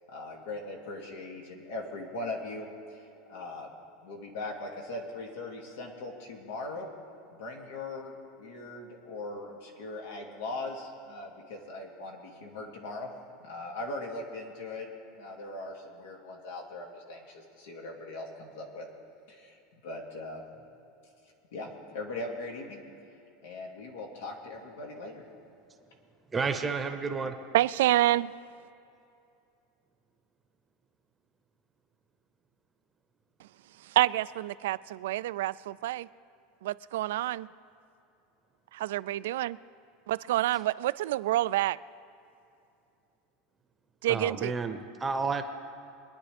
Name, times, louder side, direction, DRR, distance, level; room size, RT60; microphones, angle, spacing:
voice 1, 0.1-3.7 4.0-6.9 7.3-13.1 13.4-14.9 15.1-18.9 19.3-20.7 21.0-25.3, left 2 dB, 85° left, 2.5 m, -40 dB
voice 2, 26.3-27.3 44.1-45.4, right 4 dB, 15° right, 0.9 m, -31 dB
voice 3, 27.5-28.3 34.0-36.1 36.6-37.5 38.7-39.6 40.1-41.8 44.0-44.5, right 15 dB, 85° right, 0.3 m, -27 dB
25.0 x 10.5 x 3.4 m
supercardioid pair, 155°, 0 cm